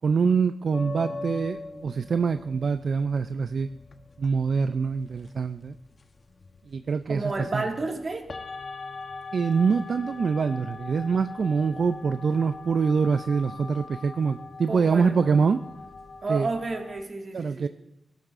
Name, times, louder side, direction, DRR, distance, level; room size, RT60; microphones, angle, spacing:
voice 1, 0.0-3.7 4.2-5.8 6.7-7.6 9.3-15.6 16.3-16.5 17.3-17.7, right 5 dB, 70° right, 11 dB, 0.3 m, -25 dB
sound 1, 0.7-17.0, left 3 dB, 55° left, 0.9 m, -42 dB
voice 2, 0.8-1.9 7.1-8.3 14.7-15.1 16.2-17.7, right 3 dB, 50° right, 2 dB, 1.9 m, -32 dB
18.0 x 12.0 x 2.5 m, 0.88 s
cardioid pair, 55°, 0 cm